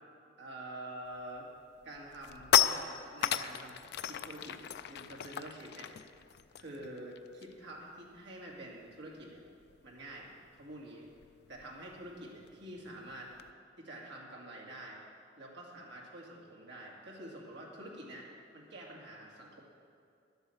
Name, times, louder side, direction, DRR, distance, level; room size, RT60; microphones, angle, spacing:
voice 1, 0.4-1.5 1.8-5.9 6.6-9.4 9.8-11.1 11.5-13.3 13.8-15.0 15.4-18.3 18.5-19.6, right 1 dB, 65° right, -3 dB, 2.3 m, -47 dB
sound 1, 1.1-1.4 1.8-7.7 8.0-8.2 8.5-13.5, left 10 dB, 60° left, 0.4 m, -35 dB
11.0 x 8.0 x 7.1 m, 2.4 s
head